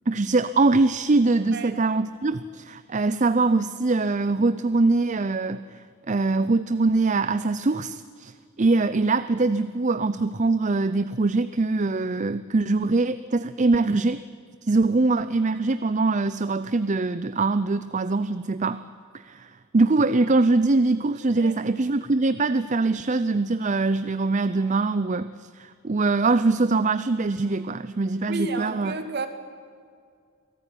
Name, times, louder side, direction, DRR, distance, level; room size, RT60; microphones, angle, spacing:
voice 1, 0.1-5.8 6.1-14.2 14.6-18.8 19.1-28.9, right 3 dB, 35° right, 13 dB, 0.6 m, -23 dB
voice 2, 21.2-21.5 28.3-29.3, right 3 dB, 55° right, 6 dB, 2.6 m, -31 dB
28.0 x 18.5 x 10.0 m, 2.2 s
head